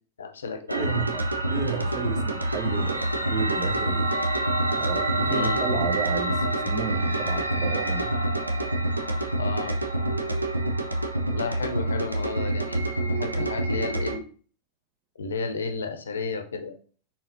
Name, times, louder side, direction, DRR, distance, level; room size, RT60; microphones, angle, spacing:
voice 1, 0.2-0.9 5.3-5.6 9.4-9.8 11.3-12.8 13.2-14.3 15.2-16.7, left 4 dB, 70° left, 0.6 m, -32 dB
voice 2, 0.7-1.2 1.5-4.1 4.7-8.2, right 6 dB, 40° right, 0.6 m, -32 dB
sound 1, 0.7-14.2, right 1 dB, 85° right, 0.5 m, -26 dB
4.1 x 3.8 x 2.6 m
figure-of-eight pair, 90°, 0 cm